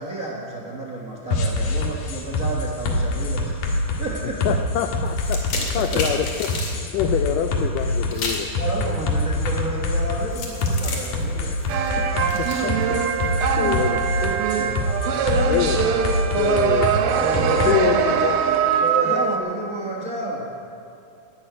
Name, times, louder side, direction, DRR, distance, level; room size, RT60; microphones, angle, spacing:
voice 1, 0.0-4.6 5.8-6.1 7.0-7.1 8.5-12.1 14.5-14.9 17.1-18.4 18.8-20.5, right 1 dB, 50° right, -1 dB, 1.0 m, -31 dB
sound 1, 1.3-17.7, left 2 dB, 65° left, 3.2 m, -25 dB
voice 2, 4.5-8.5 12.4-13.0 13.6-14.1 15.5-15.9 16.4-17.0 17.5-18.4, left 10 dB, 85° left, 6 dB, 1.9 m, -25 dB
sound 2, 5.1-6.8 8.1-8.5 10.3-13.4, left 3 dB, 50° left, 3.5 m, -32 dB
sound 3, 11.7-19.4, right 7 dB, 75° right, 2.7 m, -22 dB
13.0 x 12.0 x 9.4 m, 2.7 s
omnidirectional pair, 4.4 m